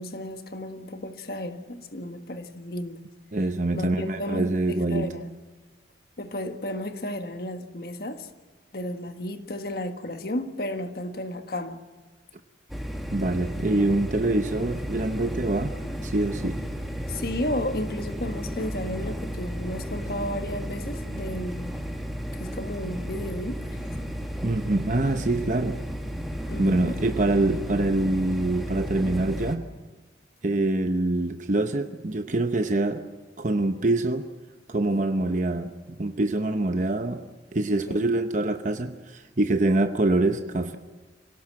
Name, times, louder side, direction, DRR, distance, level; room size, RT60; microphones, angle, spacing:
voice 1, 0.0-3.0 3.7-5.3 6.2-8.3 8.7-11.8 17.1-21.7 22.3-24.0 26.5-27.0 37.7-38.1, left 1 dB, 55° left, 8 dB, 1.5 m, -33 dB
voice 2, 3.3-5.1 13.1-15.7 16.0-16.6 24.4-25.8 26.6-29.6 30.4-33.0 33.4-34.3 34.7-35.7 36.0-37.2 37.5-40.8, right 2 dB, 45° right, 7 dB, 0.9 m, -25 dB
sound 1, 12.7-29.6, equal, ahead, 1.9 m, -33 dB
26.0 x 17.5 x 7.5 m, 1.4 s
head